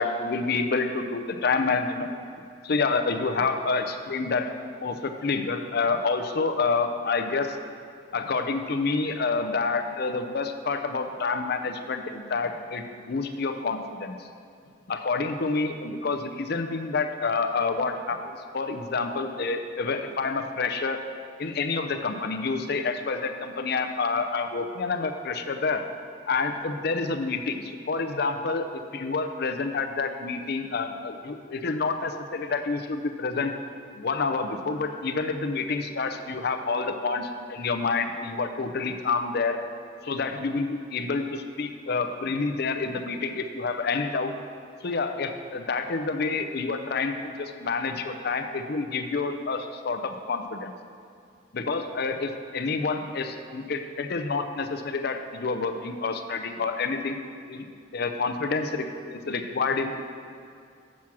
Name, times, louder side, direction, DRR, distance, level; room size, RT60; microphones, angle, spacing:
voice 1, 0.0-2.2 2.6-4.5 4.8-7.6 8.1-14.3 14.9-21.0 21.4-25.8 26.3-33.5 33.9-39.6 40.0-44.3 44.8-50.7 51.5-57.2 57.5-57.7 57.9-60.0, left 4 dB, 50° left, 6 dB, 0.5 m, -28 dB
7.2 x 6.2 x 5.9 m, 2.4 s
head